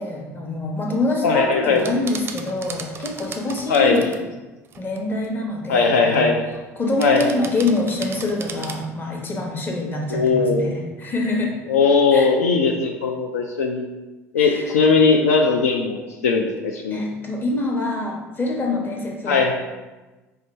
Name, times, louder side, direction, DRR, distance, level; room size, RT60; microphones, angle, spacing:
voice 1, 0.0-4.2 4.8-6.3 6.8-11.6 12.1-12.3 14.4-14.8 16.9-19.5, left 2 dB, 25° left, 0 dB, 0.9 m, -25 dB
voice 2, 1.2-1.9 3.7-4.0 5.7-6.5 7.0-7.3 10.1-10.7 11.7-13.9 14.3-17.0 19.2-19.5, left 4 dB, 70° left, 2 dB, 0.4 m, -19 dB
sound 1, 1.7-4.2 4.6-5.3 6.1-6.6 7.0-8.9, right 5 dB, 30° right, 0.5 m, -37 dB
4.9 x 2.3 x 4.1 m, 1.2 s
figure-of-eight pair, 65°, 8 cm